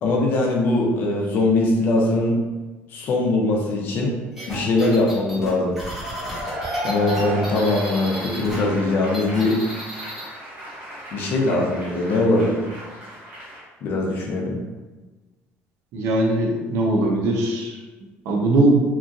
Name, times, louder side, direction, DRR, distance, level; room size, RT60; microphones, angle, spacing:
voice 1, 0.0-2.4 2.9-4.2 4.5-5.8 6.8-9.6 11.1-12.6 13.8-14.6, left 2 dB, 50° left, -1 dB, 0.6 m, -21 dB
sound 1, 4.4-8.6 8.9-10.3, equal, 5° right, 1.0 m, -34 dB
Cheering / Applause / Crowd, 6.0-13.6, right 1 dB, 50° right, 1.0 m, -34 dB
voice 2, 15.9-17.8 18.3-18.8, right 2 dB, 70° right, 0 dB, 0.6 m, -20 dB
3.0 x 2.3 x 2.6 m, 1.2 s
cardioid pair, 150°, 5 cm